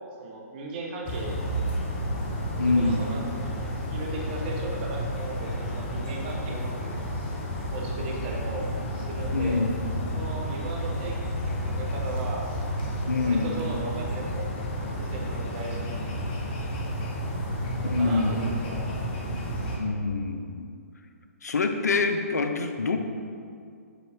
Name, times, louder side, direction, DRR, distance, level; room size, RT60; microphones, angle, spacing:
voice 1, 0.2-1.3 2.5-7.3 7.7-9.7 10.1-11.1 11.4-12.5 13.2-14.5 14.9-15.9 17.7-19.1, right 2 dB, 40° right, -1 dB, 1.0 m, -37 dB
sound 1, 1.1-19.8, equal, 40° left, 1.0 m, -31 dB
voice 2, 2.6-3.0 9.3-9.8 13.1-13.5 17.9-18.3 19.8-20.7 21.4-23.0, left 3 dB, 80° left, 6 dB, 0.6 m, -25 dB
6.8 x 4.1 x 3.6 m, 2.3 s
hypercardioid pair, 135°, 9 cm